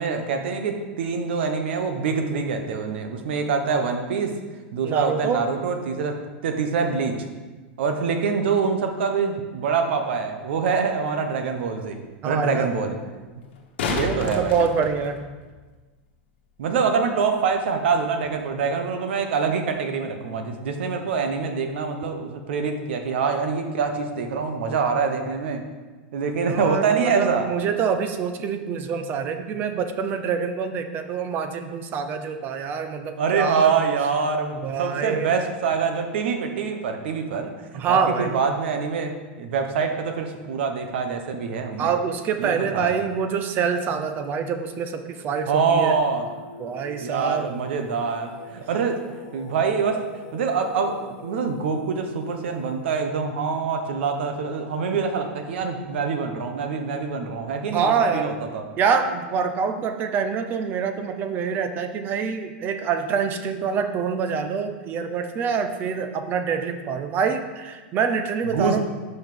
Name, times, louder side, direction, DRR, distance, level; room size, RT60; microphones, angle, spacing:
voice 1, 0.0-4.3 4.7-7.3 7.8-12.0 12.2-13.0 13.9-14.6 16.6-25.6 26.1-27.5 33.2-37.5 37.9-41.9 42.4-43.0 45.5-46.2 47.0-49.0 49.3-50.0 50.3-58.6 68.5-68.8, right 5 dB, 80° right, 6 dB, 1.1 m, -25 dB
voice 2, 4.8-5.4 12.2-12.7 14.0-15.2 26.4-33.8 34.5-35.3 37.7-38.3 41.8-45.9 46.6-47.5 57.7-58.3 58.8-68.8, right 6 dB, 35° right, 8 dB, 0.7 m, -26 dB
sound 1, 10.6-10.7 13.4-15.6 18.4-18.5, left 4 dB, 85° left, 1.2 m, -30 dB
Singing, 45.1-52.9, left 2 dB, 35° left, 1.3 m, -44 dB
5.5 x 5.4 x 6.0 m, 1.3 s
supercardioid pair, 145°, 6 cm